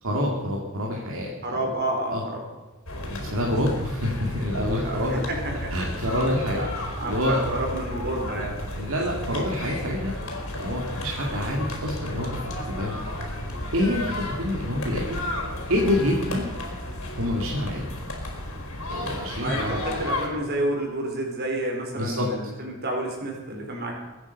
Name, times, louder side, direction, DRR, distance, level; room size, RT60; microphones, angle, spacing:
voice 1, 0.0-1.3 2.1-2.2 3.1-5.2 5.7-6.6 7.1-7.4 8.8-10.1 10.5-13.0 13.7-14.0 14.4-15.2 15.7-16.5 17.2-17.8 18.9-19.8 22.0-22.3, left 1 dB, 70° right, -2 dB, 2.5 m, -27 dB
voice 2, 1.4-2.4 4.8-5.9 6.5-8.6 14.5-14.6 19.4-23.9, right 1 dB, 50° right, 1 dB, 4.3 m, -30 dB
sound 1, 2.9-20.3, left 1 dB, 75° left, 4.1 m, -33 dB
22.5 x 9.5 x 5.5 m, 1.2 s
head